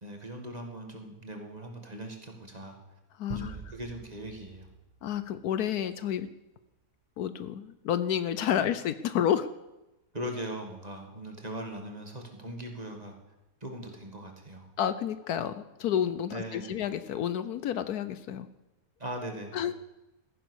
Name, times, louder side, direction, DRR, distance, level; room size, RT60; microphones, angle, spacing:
voice 1, 0.0-2.8 3.3-4.7 8.6-8.7 10.1-13.2 13.6-14.7 16.3-16.8 19.0-19.6, right 1 dB, 25° right, 3 dB, 2.0 m, -40 dB
voice 2, 3.2-3.6 5.0-6.3 7.2-9.5 14.8-18.5 19.5-19.7, left 9 dB, 75° left, 13 dB, 1.2 m, -30 dB
sound 1, 3.3-5.9, right 5 dB, 50° right, 0.5 m, -46 dB
15.0 x 10.5 x 6.3 m, 0.97 s
omnidirectional pair, 1.7 m